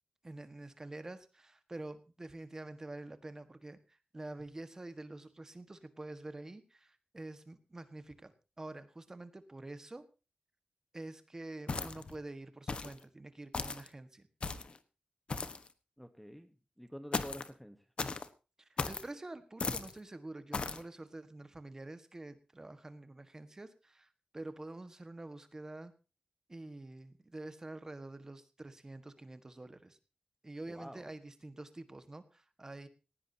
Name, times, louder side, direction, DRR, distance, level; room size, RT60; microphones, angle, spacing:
voice 1, 0.2-10.1 10.9-14.2 18.6-25.9 26.5-30.0 30.4-32.9, right 2 dB, 20° right, 10 dB, 1.5 m, -47 dB
sound 1, 11.7-12.2 12.7-13.0 13.5-13.9 14.4-14.8 15.3-15.7 17.1-17.5 18.0-18.3 18.8-19.1 19.6-19.9 20.5-20.8, left 4 dB, 45° left, 1.2 m, -36 dB
voice 2, 16.0-17.8 30.7-31.1, equal, ahead, 9 dB, 1.1 m, -48 dB
18.5 x 17.0 x 2.8 m, 0.32 s
wide cardioid pair, 175°, 3 cm